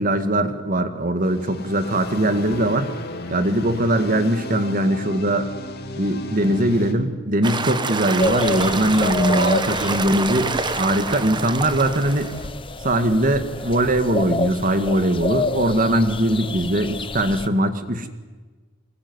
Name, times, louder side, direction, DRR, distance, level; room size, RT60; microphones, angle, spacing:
voice 1, 0.0-2.9 3.3-5.5 6.0-12.3 12.8-18.1, right 1 dB, 40° right, 9 dB, 2.0 m, -21 dB
sound 1, 1.2-6.9, left 1 dB, 45° left, 2.5 m, -34 dB
sound 2, 7.4-12.5, right 3 dB, 20° right, 1.1 m, -27 dB
sound 3, 8.2-17.5, left 3 dB, 25° left, 0.9 m, -29 dB
24.5 x 21.0 x 9.8 m, 1.3 s
head